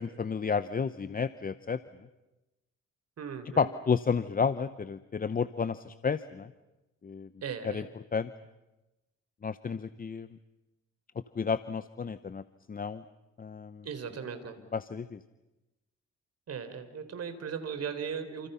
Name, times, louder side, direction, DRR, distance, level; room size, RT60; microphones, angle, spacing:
voice 1, 0.0-1.8 3.6-6.5 7.0-7.3 7.6-7.8 8.1-8.3 9.4-10.3 11.4-12.4 12.7-13.0 13.4-13.9 14.7-15.2, left 5 dB, 30° left, 13 dB, 0.8 m, -31 dB
voice 2, 3.2-3.7 7.4-7.9 13.8-14.6 16.5-18.5, right 6 dB, 55° right, 8 dB, 4.0 m, -37 dB
29.5 x 28.0 x 5.7 m, 1.0 s
cardioid pair, 90°, 30 cm